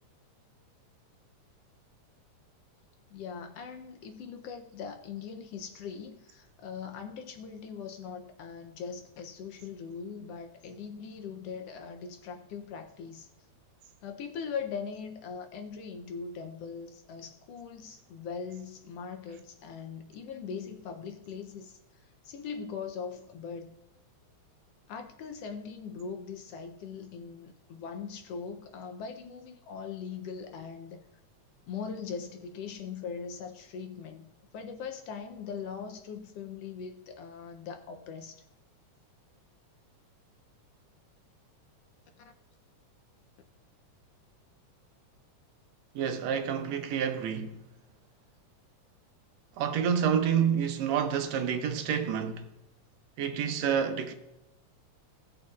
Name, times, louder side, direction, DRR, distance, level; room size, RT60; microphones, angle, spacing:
voice 1, 3.1-13.3 14.0-23.8 24.9-31.0 31.7-38.4 42.2-42.3, left 6 dB, 75° left, 1.5 m, -41 dB
voice 2, 46.0-47.6 49.6-52.5 53.2-54.1, right 8 dB, 75° right, 1.9 m, -28 dB
17.5 x 6.9 x 2.4 m
omnidirectional pair, 3.3 m